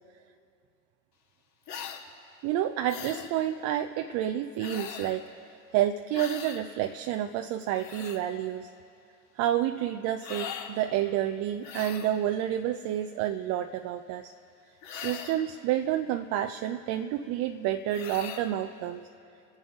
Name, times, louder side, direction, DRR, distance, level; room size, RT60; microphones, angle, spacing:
sound 1, 1.7-2.0 2.9-3.3 4.6-5.2 6.1-6.6 7.5-8.2 10.2-10.7 11.6-12.2 14.8-15.5 17.9-18.5, left 8 dB, 40° left, 1.8 m, -40 dB
voice 1, 2.4-8.7 9.4-14.3 14.9-19.0, right 11 dB, 40° right, 6 dB, 0.6 m, -29 dB
29.5 x 10.5 x 3.7 m, 2.6 s
hypercardioid pair, 85°, 43 cm